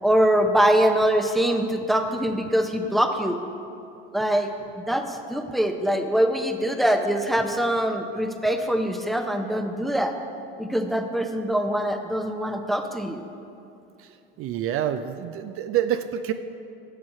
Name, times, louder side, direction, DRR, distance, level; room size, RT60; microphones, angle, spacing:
voice 1, 0.0-3.4 4.1-4.5 4.8-10.1 10.6-13.2, equal, ahead, 6 dB, 0.6 m, -23 dB
voice 2, 14.4-16.3, right 10 dB, 50° right, 9 dB, 0.4 m, -27 dB
8.0 x 5.6 x 5.5 m, 2.6 s
hypercardioid pair, 80°, 30 cm